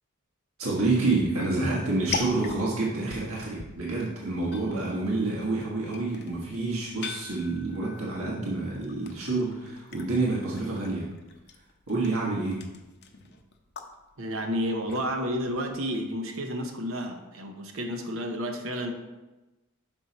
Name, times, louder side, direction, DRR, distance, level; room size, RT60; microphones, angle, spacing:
voice 1, 0.6-11.0 11.9-12.6, right 3 dB, 85° right, -4 dB, 1.4 m, -28 dB
sound 1, 1.0-16.1, left 5 dB, 55° left, 0.7 m, -42 dB
voice 2, 14.2-18.9, equal, 65° right, 4 dB, 0.9 m, -31 dB
6.2 x 5.5 x 4.1 m, 1.1 s
head